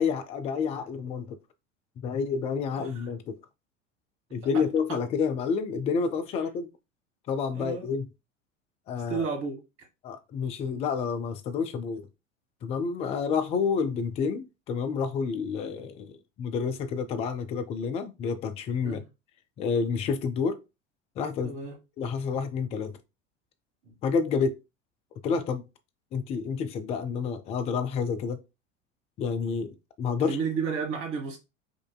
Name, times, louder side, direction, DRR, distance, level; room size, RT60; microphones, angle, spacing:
voice 1, 0.0-1.4 2.0-3.4 4.3-6.7 7.3-8.0 8.9-9.2 10.0-12.1 12.6-19.0 19.6-20.6 21.2-21.5 22.0-23.0 24.0-24.6 25.2-25.6 26.1-28.4 29.2-30.4, left 5 dB, 20° left, 0.3 m, -29 dB
voice 2, 2.7-3.1 4.5-4.6 7.5-7.9 9.1-9.6 18.8-19.0 21.4-21.7 23.8-23.9 30.2-31.4, right 6 dB, 35° right, 1.4 m, -32 dB
5.2 x 2.6 x 2.2 m
figure-of-eight pair, 75°, 37 cm